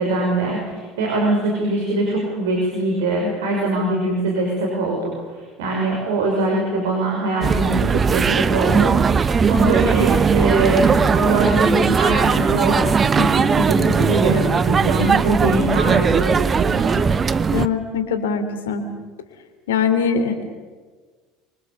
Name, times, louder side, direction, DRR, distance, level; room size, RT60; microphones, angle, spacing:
voice 1, 0.0-17.0, right 2 dB, 70° right, -1 dB, 5.5 m, -22 dB
sound 1, 7.4-17.7, right 5 dB, 30° right, 0.9 m, -18 dB
voice 2, 17.5-18.8 19.7-20.4, left 6 dB, 70° left, 8 dB, 2.9 m, -22 dB
26.0 x 24.5 x 6.9 m, 1.4 s
figure-of-eight pair, 65°, 0 cm